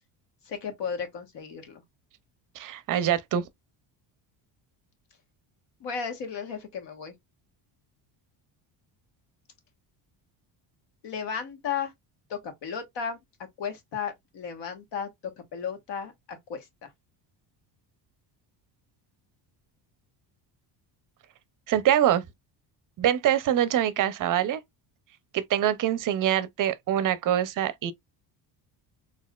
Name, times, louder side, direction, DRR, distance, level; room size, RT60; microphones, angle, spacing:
voice 1, 0.4-1.8 5.8-7.1 11.0-11.9 12.3-13.2 13.6-15.1 15.5-16.9, left 6 dB, 65° left, 1.3 m, -34 dB
voice 2, 2.6-3.4 21.7-22.2 23.0-24.6 25.3-27.9, right 11 dB, 45° right, 0.6 m, -24 dB
4.1 x 2.5 x 2.3 m
cardioid pair, 125°, 47 cm